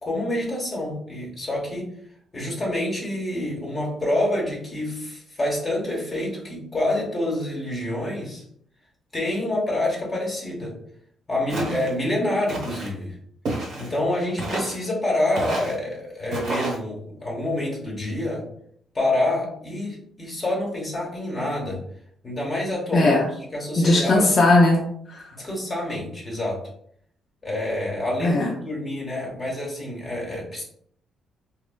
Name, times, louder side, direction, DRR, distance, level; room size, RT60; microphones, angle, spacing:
voice 1, 0.0-1.9 2.3-8.4 9.1-10.7 11.3-13.2 13.8-18.4 18.9-21.8 22.2-23.2 23.5-24.4 25.3-26.7 27.4-30.6, left 1 dB, 30° left, -3 dB, 0.9 m, -27 dB
Walk footsteps, 11.5-11.9 12.5-12.9 13.4-14.0 14.4-14.8 15.3-15.8 16.3-16.8, right 2 dB, 70° right, 1.0 m, -30 dB
voice 2, 22.9-23.3 23.8-25.3 28.2-28.5, left 2 dB, 45° left, -1 dB, 0.4 m, -18 dB
3.1 x 2.1 x 2.2 m, 0.67 s
cardioid pair, 90°, 0 cm